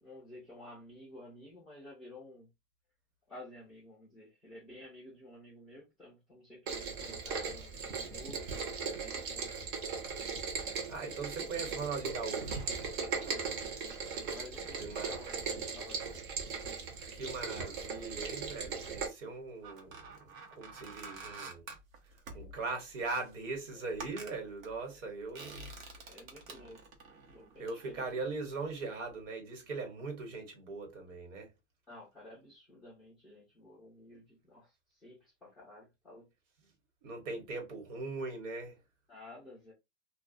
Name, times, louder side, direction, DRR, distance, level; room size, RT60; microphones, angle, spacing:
voice 1, 0.0-2.5 3.3-9.5 13.2-16.2 22.3-22.7 23.7-23.9 25.5-26.8 27.3-28.1 31.9-36.3 39.1-39.7, left 1 dB, ahead, 0.5 m, -53 dB
Rain, 6.7-19.1, right 5 dB, 40° right, 0.7 m, -38 dB
voice 2, 10.9-12.6 14.8-15.1 17.1-20.2 20.6-21.6 22.3-26.2 27.6-31.5 37.0-38.8, right 3 dB, 70° right, 1.2 m, -40 dB
sound 1, 19.3-28.8 29.1-29.3, right 3 dB, 85° right, 0.9 m, -50 dB
2.3 x 2.2 x 2.5 m
supercardioid pair, 170°, 39 cm